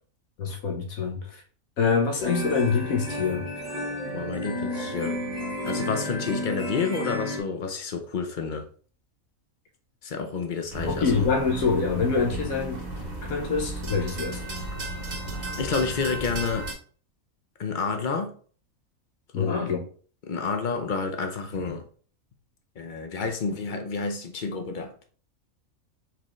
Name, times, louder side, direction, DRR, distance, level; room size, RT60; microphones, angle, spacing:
voice 1, 0.4-1.4 1.8-3.5 10.9-12.9 13.2-14.5 19.3-19.8, left 5 dB, 80° left, 1.4 m, -25 dB
sound 1, 2.2-7.4, left 1 dB, 30° left, 1.2 m, -32 dB
voice 2, 4.1-5.2 5.6-8.7 10.0-11.3 15.6-16.7 17.6-18.3 19.3-19.7 20.3-21.8 22.8-25.0, left 5 dB, 50° left, 0.6 m, -29 dB
sound 2, 10.7-16.7, right 2 dB, 35° right, 1.0 m, -34 dB
4.7 x 3.6 x 3.1 m
omnidirectional pair, 1.5 m